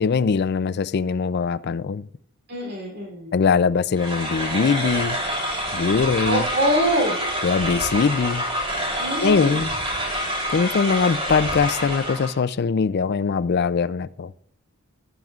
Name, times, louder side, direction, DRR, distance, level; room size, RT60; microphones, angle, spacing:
voice 1, 0.0-2.1 3.3-5.2 5.7-6.4 7.4-8.4 9.2-9.7 10.5-14.3, left 5 dB, 45° left, 0.4 m, -21 dB
voice 2, 2.5-3.3 6.2-7.2 9.0-9.7, right 1 dB, 50° right, 3.2 m, -24 dB
sound 1, 4.0-12.4, equal, 25° right, 3.3 m, -27 dB
19.0 x 9.2 x 2.4 m
head